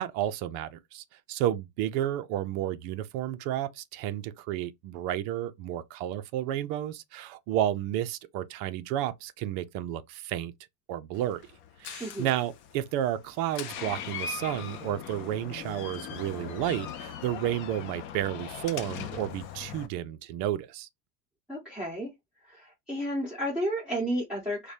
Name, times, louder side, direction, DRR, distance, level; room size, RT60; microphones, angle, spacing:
voice 1, 0.0-10.5 10.9-11.4 11.8-20.9, right 12 dB, 45° right, 0.5 m, -31 dB
Door, 11.1-19.9, left 8 dB, 30° left, 0.3 m, -40 dB
voice 2, 12.0-12.3 21.5-22.1 22.4-24.7, equal, ahead, 1.4 m, -32 dB
4.6 x 2.2 x 2.6 m
supercardioid pair, 140°, 45 cm